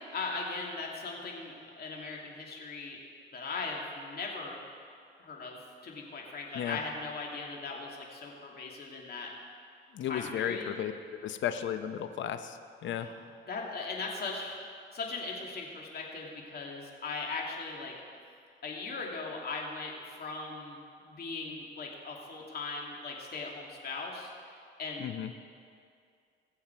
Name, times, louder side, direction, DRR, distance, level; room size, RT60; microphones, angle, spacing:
voice 1, 0.1-3.0 3.3-4.6 5.2-9.3 10.0-10.8 13.0-13.2 13.5-14.6 14.9-17.9 18.6-24.3 24.8-25.2, left 3 dB, 50° left, -1 dB, 2.6 m, -39 dB
voice 2, 9.9-10.9 11.2-13.1 25.0-25.3, left 10 dB, 70° left, 9 dB, 0.8 m, -34 dB
21.0 x 7.2 x 4.6 m, 2.3 s
cardioid pair, 90°, 20 cm